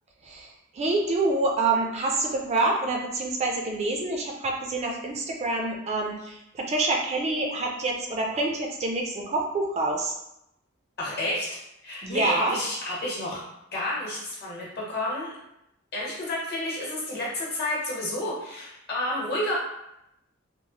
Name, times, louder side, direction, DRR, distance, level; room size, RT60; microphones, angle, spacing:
voice 1, 0.2-10.1 12.0-12.5, right 2 dB, 30° right, 1 dB, 0.3 m, -27 dB
voice 2, 11.0-11.5 11.8-13.4 13.7-15.3 15.9-19.5, left 1 dB, 50° left, -5 dB, 1.0 m, -30 dB
3.0 x 2.0 x 2.8 m, 0.83 s
head